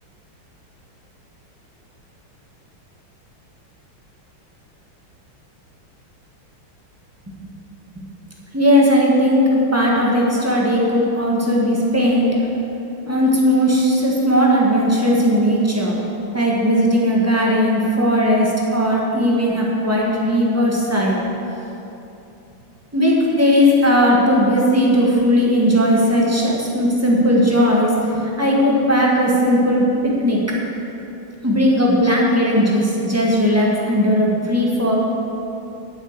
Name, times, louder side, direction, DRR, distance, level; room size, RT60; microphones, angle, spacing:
voice 1, 8.5-12.3 13.0-16.0 16.3-21.2 22.9-30.4 31.4-34.9, equal, 10° right, -4 dB, 1.0 m, -17 dB
7.7 x 6.5 x 7.9 m, 2.8 s
omnidirectional pair, 2.3 m